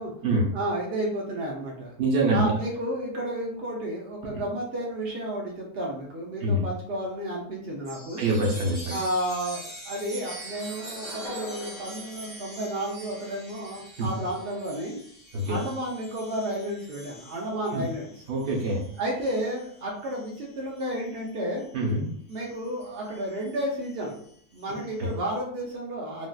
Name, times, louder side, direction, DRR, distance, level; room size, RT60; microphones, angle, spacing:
voice 1, 0.5-1.9 2.3-8.2 8.9-15.0 15.5-18.2 19.0-21.7 22.3-24.2 24.5-26.3, right 1 dB, 65° right, -2 dB, 0.6 m, -32 dB
voice 2, 2.0-2.5 6.4-6.6 8.2-9.0 14.0-14.1 15.3-15.6 17.7-17.8 18.3-18.8 21.7-22.1, right 1 dB, 45° right, -3 dB, 0.9 m, -25 dB
Chime, 7.8-21.8 22.3-25.1, right 1 dB, 10° right, 0.9 m, -45 dB
sound 1, 10.4-13.5, left 2 dB, 70° left, 0.6 m, -43 dB
3.6 x 2.5 x 2.3 m, 0.62 s
omnidirectional pair, 1.7 m